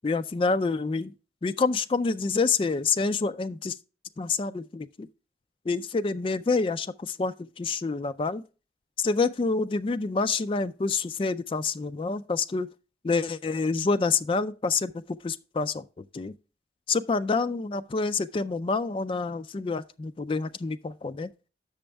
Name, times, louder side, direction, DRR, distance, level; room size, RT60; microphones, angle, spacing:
voice 1, 0.0-1.1 1.4-3.8 4.2-5.1 5.7-8.4 9.0-12.7 13.0-16.3 16.9-21.3, left 4 dB, 30° left, 0.3 m, -27 dB
8.7 x 6.2 x 3.3 m
head